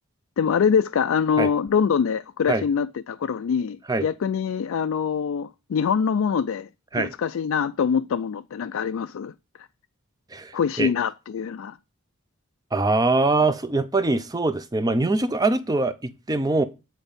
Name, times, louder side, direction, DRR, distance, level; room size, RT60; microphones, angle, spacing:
voice 1, 0.4-6.7 6.9-9.3 9.6-9.7 10.5-11.8, left 6 dB, 60° left, 0.3 m, -24 dB
voice 2, 10.3-10.9 12.7-16.6, right 2 dB, 15° right, 0.5 m, -23 dB
9.0 x 4.4 x 5.3 m
head